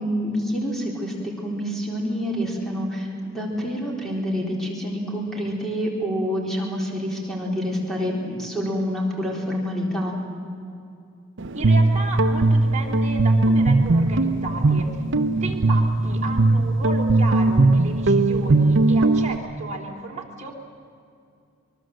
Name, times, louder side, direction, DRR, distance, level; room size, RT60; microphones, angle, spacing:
voice 1, 0.0-10.2, equal, ahead, -2 dB, 4.0 m, -27 dB
Guitar, 11.4-19.4, right 2 dB, 60° right, 0.7 m, -19 dB
voice 2, 11.5-15.0 15.4-20.5, right 3 dB, 35° right, 0 dB, 3.2 m, -33 dB
24.0 x 22.5 x 7.8 m, 2.5 s
head